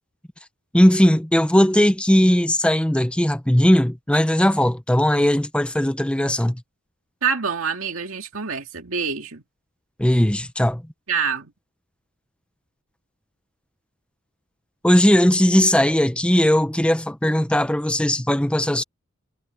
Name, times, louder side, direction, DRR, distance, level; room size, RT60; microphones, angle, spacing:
voice 1, 0.7-6.6 10.0-10.8 14.8-18.8, equal, 5° left, 0.7 m, -18 dB
voice 2, 7.2-9.4 11.1-11.5, right 6 dB, 70° right, 2.4 m, -26 dB
head